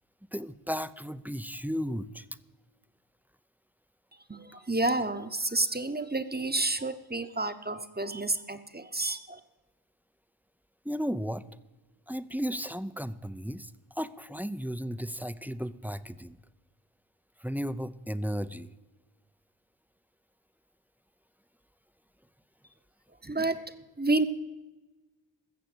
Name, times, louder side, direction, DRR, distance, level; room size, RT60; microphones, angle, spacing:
voice 1, 0.3-2.3 10.8-11.4 12.1-13.7 14.0-16.4 17.4-18.7, equal, 5° right, 15 dB, 0.5 m, -34 dB
voice 2, 4.3-9.4 23.2-24.3, right 2 dB, 20° right, 10 dB, 0.9 m, -30 dB
15.0 x 7.0 x 7.9 m, 1.1 s
wide cardioid pair, 55°, 48 cm